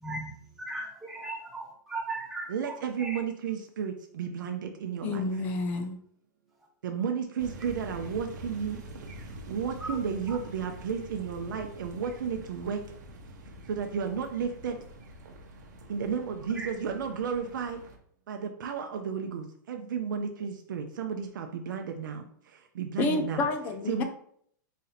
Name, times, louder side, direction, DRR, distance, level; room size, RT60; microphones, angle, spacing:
voice 1, 0.0-3.2 9.8-10.0 10.3-10.4 16.5-16.7, right 2 dB, ahead, -4 dB, 0.8 m, -38 dB
voice 2, 2.5-5.3 6.8-8.8 9.5-12.8 13.7-14.8 15.9-17.8 18.3-22.3 22.7-23.5 23.9-24.0, right 6 dB, 80° right, 4 dB, 0.5 m, -33 dB
voice 3, 5.0-6.0 23.0-24.0, left 3 dB, 15° left, 6 dB, 0.4 m, -29 dB
sound 1, 7.4-18.0, right 1 dB, 65° right, 0.9 m, -46 dB
4.1 x 2.7 x 4.0 m, 0.64 s
supercardioid pair, 170°, 10 cm